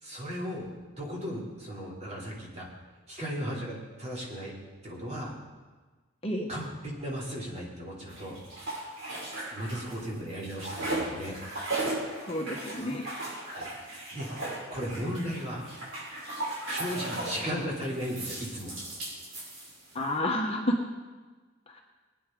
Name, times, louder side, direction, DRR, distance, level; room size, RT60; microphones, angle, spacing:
voice 1, 0.0-0.7 1.0-2.7 3.1-4.5 4.8-5.3 6.5-6.7 7.0-8.4 9.5-11.4 13.5-13.7 14.1-14.3 14.7-15.7 16.7-18.7, equal, 35° right, -4 dB, 3.1 m, -36 dB
sound 1, 8.1-10.0 10.3-17.5 18.0-20.0, right 2 dB, 85° right, 5.1 m, -36 dB
voice 2, 12.3-13.1 19.9-20.8 21.7-21.8, left 1 dB, 30° left, 1 dB, 1.2 m, -30 dB
20.0 x 9.6 x 3.8 m, 1.3 s
head